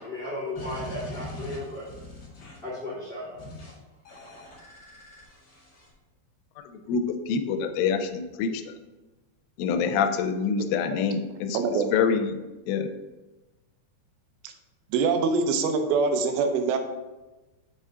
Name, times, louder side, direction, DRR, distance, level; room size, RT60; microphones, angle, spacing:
voice 1, 0.0-1.9 2.6-3.4, left 1 dB, 20° left, -9 dB, 1.6 m, -35 dB
sound 1, 0.5-2.7 3.4-3.7 4.0-5.9, left 1 dB, 50° left, 1.3 m, -41 dB
voice 2, 6.9-8.5 9.6-12.4 12.7-12.9, left 6 dB, 90° left, 8 dB, 3.1 m, -26 dB
voice 3, 11.5-11.9 14.9-16.8, right 4 dB, 90° right, 6 dB, 3.2 m, -24 dB
7.8 x 5.5 x 3.7 m, 1.1 s
omnidirectional pair, 5.4 m